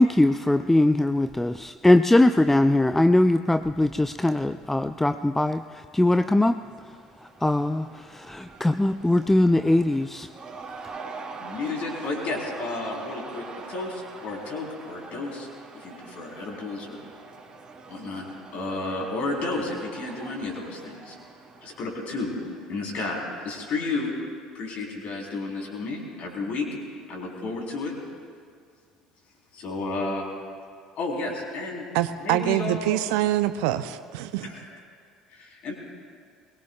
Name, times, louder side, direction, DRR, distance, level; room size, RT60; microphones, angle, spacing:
voice 1, 0.0-5.6 5.9-6.6 7.4-10.3, left 1 dB, 10° left, 11 dB, 0.4 m, -21 dB
Cheering / Crowd, 6.4-23.0, right 4 dB, 25° right, 2.2 m, -44 dB
voice 2, 11.4-15.5 15.8-17.0 17.9-18.2 18.5-21.2 21.6-22.4 22.7-24.1 24.5-26.7 27.1-27.9 29.5-30.3 31.0-31.8 32.2-33.0 34.4-34.8 35.3-35.7, left 3 dB, 45° left, -1 dB, 3.9 m, -32 dB
voice 3, 31.9-34.5, right 13 dB, 60° right, 12 dB, 0.6 m, -25 dB
22.5 x 19.5 x 2.4 m, 2.1 s
figure-of-eight pair, 60°, 3 cm